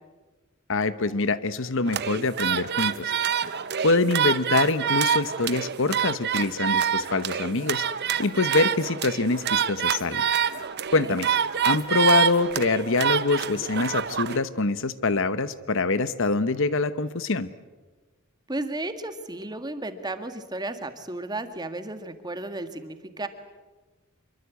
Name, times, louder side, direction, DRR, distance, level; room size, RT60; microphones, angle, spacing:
voice 1, 0.7-3.1 3.8-7.8 8.2-10.2 10.9-11.3 11.6-17.5, left 3 dB, 65° left, 14 dB, 1.0 m, -24 dB
sound 1, 1.9-14.4, right 8 dB, 50° right, 0.9 m, -26 dB
voice 2, 18.5-23.3, right 2 dB, 20° right, 8 dB, 1.8 m, -33 dB
25.5 x 23.5 x 8.4 m, 1.2 s
head